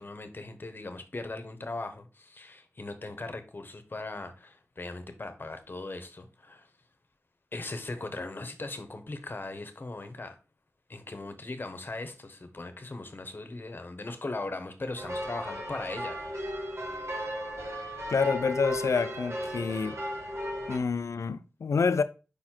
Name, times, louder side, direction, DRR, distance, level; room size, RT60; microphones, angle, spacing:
voice 1, 0.0-6.7 7.5-10.4 10.9-16.3, left 2 dB, 45° left, 1.0 m, -39 dB
sound 1, 15.0-20.8, equal, 65° right, 1.3 m, -35 dB
voice 2, 18.1-20.0 20.7-22.0, left 5 dB, 80° left, 0.4 m, -27 dB
5.2 x 4.2 x 4.3 m
wide cardioid pair, 80°, 5 cm